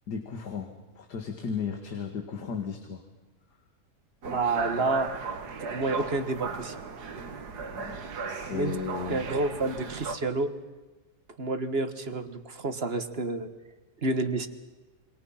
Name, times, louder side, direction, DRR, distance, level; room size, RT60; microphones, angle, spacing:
voice 1, 0.1-3.0 7.7-9.2, left 6 dB, 90° left, 5 dB, 2.4 m, -35 dB
voice 2, 4.2-5.1 5.7-6.7 8.5-8.8 9.1-10.5 11.4-13.5 14.0-14.5, right 3 dB, 40° right, 10 dB, 1.6 m, -29 dB
sound 1, 4.2-10.2, right 5 dB, 75° right, 2.1 m, -37 dB
28.0 x 24.5 x 5.8 m, 1.2 s
omnidirectional pair, 1.7 m